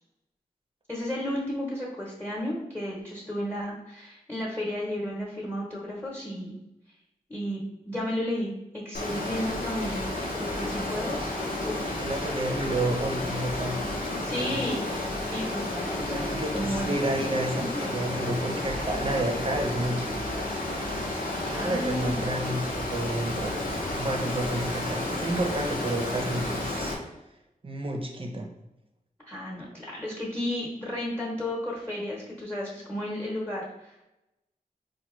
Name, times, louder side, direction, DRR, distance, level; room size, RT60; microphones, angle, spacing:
voice 1, 0.9-6.5 7.3-10.0 10.3-11.3 11.6-11.9 14.2-14.8 15.3-17.3 21.5-22.3 29.2-34.1, left 1 dB, 10° left, -4 dB, 0.9 m, -33 dB
Water, 8.9-26.9, left 1 dB, 90° left, 0.8 m, -32 dB
voice 2, 12.0-13.8 14.2-14.6 15.9-20.5 21.4-23.6 23.9-26.9 27.6-28.5, right 1 dB, 40° right, 2 dB, 0.7 m, -30 dB
4.5 x 2.3 x 3.1 m, 0.92 s
wide cardioid pair, 70°, 15 cm